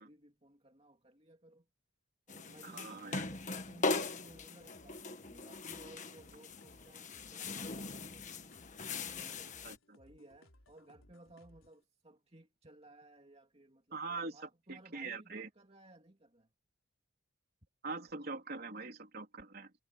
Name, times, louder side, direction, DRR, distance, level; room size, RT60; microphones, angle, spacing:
voice 1, 0.0-1.7 2.3-8.4 9.2-9.5 10.0-16.5, right 1 dB, 30° right, 2.7 m, -59 dB
sound 1, 2.3-9.8, left 3 dB, 35° left, 1.6 m, -40 dB
voice 2, 2.6-3.2 9.6-10.0 13.9-14.4 14.7-15.5 17.8-19.7, right 3 dB, 50° right, 3.6 m, -43 dB
sound 2, 4.2-11.8, left 1 dB, 75° left, 4.0 m, -65 dB
head